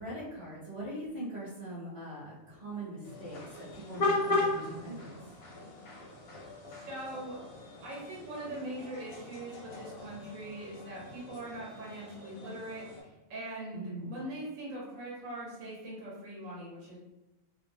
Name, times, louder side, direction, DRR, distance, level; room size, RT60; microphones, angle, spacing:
voice 1, 0.0-5.1 13.7-14.1, right 1 dB, 30° right, -13 dB, 0.7 m, -41 dB
sound 1, 3.0-13.0, left 2 dB, 65° left, 0.7 m, -37 dB
voice 2, 6.7-7.3 7.8-17.0, right 1 dB, 75° right, -6 dB, 1.2 m, -42 dB
2.7 x 2.1 x 2.7 m, 1.0 s
omnidirectional pair, 1.4 m